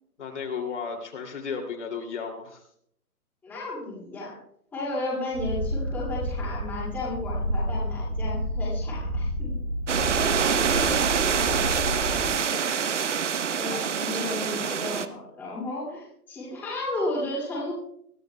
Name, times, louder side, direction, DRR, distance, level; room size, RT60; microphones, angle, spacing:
voice 1, 0.2-2.6 10.8-13.0, left 5 dB, 50° left, 2 dB, 2.8 m, -36 dB
voice 2, 3.4-4.3 4.7-9.5 13.6-17.7, left 2 dB, 5° left, -7 dB, 2.4 m, -33 dB
Purr, 5.3-12.3, equal, 25° right, 1.5 m, -30 dB
sound 1, 9.9-15.1, right 7 dB, 50° right, 0.9 m, -25 dB
22.0 x 14.0 x 2.2 m, 0.68 s
hypercardioid pair, 170°, 45 cm